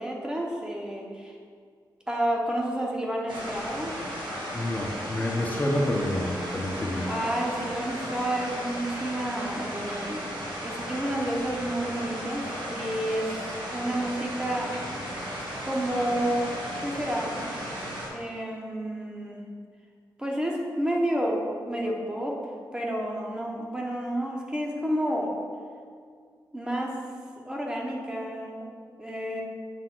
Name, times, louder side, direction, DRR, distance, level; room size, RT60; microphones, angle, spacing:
voice 1, 0.0-1.3 2.1-3.9 7.1-10.2 10.6-14.8 15.6-16.5 16.8-17.5 18.1-19.4 20.2-22.4 22.7-25.4 26.5-26.9 27.5-28.7 29.0-29.4, right 1 dB, 10° right, -1 dB, 0.9 m, -30 dB
sound 1, 3.3-18.1, equal, 85° right, 1.8 m, -35 dB
voice 2, 4.5-7.1, left 1 dB, 25° left, -2 dB, 0.8 m, -28 dB
7.9 x 3.5 x 6.0 m, 2.1 s
wide cardioid pair, 135°, 8 cm